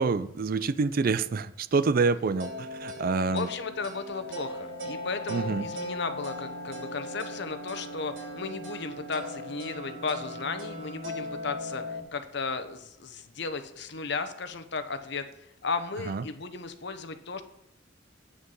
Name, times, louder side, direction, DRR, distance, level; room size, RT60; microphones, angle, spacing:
voice 1, 0.0-3.5 5.3-5.7 16.1-16.2, right 4 dB, 45° right, 15 dB, 0.4 m, -27 dB
sound 1, 2.4-12.0, left 1 dB, 85° right, 3.1 m, -38 dB
voice 2, 3.3-15.2 15.6-17.4, left 4 dB, 60° left, 9 dB, 0.9 m, -35 dB
9.2 x 6.7 x 5.5 m, 0.82 s
head